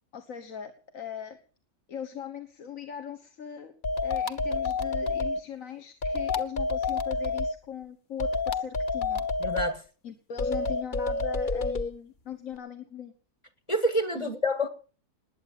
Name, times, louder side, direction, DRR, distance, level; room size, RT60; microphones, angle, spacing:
voice 1, 0.1-1.4 1.9-3.7 4.0-9.3 10.0-13.1 14.1-14.3, left 8 dB, 60° left, 1.7 m, -40 dB
sound 1, 3.8-5.4 6.0-7.5 8.2-9.7 10.4-11.9, left 3 dB, 40° left, 1.0 m, -28 dB
voice 2, 9.4-9.8 13.7-14.7, equal, 20° left, 2.0 m, -27 dB
20.0 x 8.7 x 7.3 m
omnidirectional pair, 1.6 m